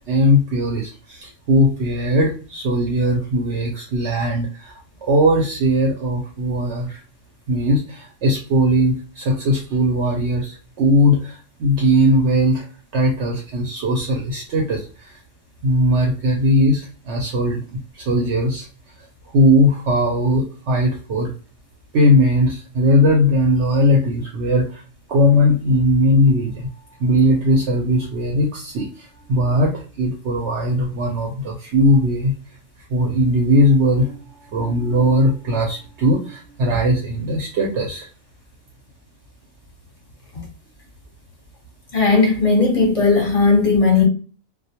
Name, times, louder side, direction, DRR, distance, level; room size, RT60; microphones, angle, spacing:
voice 1, 0.0-7.0 7.5-12.6 12.9-14.8 15.6-17.8 18.1-18.7 19.3-21.3 21.9-24.8 25.1-26.7 27.0-32.3 32.9-38.1, equal, 65° right, 0 dB, 0.8 m, -19 dB
voice 2, 41.9-44.0, left 4 dB, 30° left, 0 dB, 0.7 m, -16 dB
2.1 x 2.1 x 2.8 m, 0.35 s
omnidirectional pair, 1.4 m